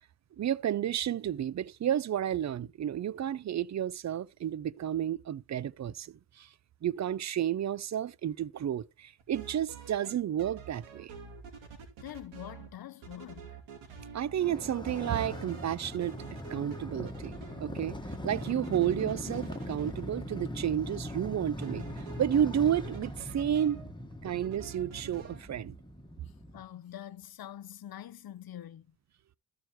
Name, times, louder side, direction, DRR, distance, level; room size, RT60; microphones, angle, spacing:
voice 1, 0.4-6.5 6.8-11.1 14.1-16.2 16.5-18.0 18.2-21.8 22.2-23.8 24.2-25.8, right 10 dB, 40° right, 0.5 m, -31 dB
sound 1, 9.2-10.1 10.4-12.7 13.0-14.6 14.9-20.0 21.6-23.9 24.2-25.4, right 6 dB, 85° right, 2.6 m, -47 dB
voice 2, 12.0-13.6 26.5-28.9, left 11 dB, 50° left, 0.7 m, -45 dB
Motorcycle, 14.4-26.6, left 1 dB, 10° left, 1.5 m, -41 dB
13.5 x 4.8 x 4.5 m
cardioid pair, 70°, 45 cm